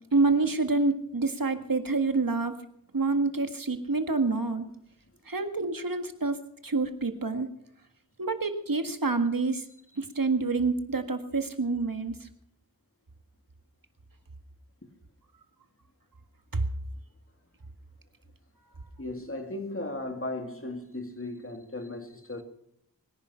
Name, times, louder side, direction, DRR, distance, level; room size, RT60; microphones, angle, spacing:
voice 1, 0.1-2.5 2.9-4.7 5.3-6.4 6.6-7.5 8.2-9.6 10.0-12.3 16.5-16.6, right 3 dB, 65° right, 1.8 m, -27 dB
voice 2, 19.0-22.4, left 2 dB, 35° left, 2.5 m, -36 dB
23.0 x 10.5 x 5.7 m
wide cardioid pair, 55°, 36 cm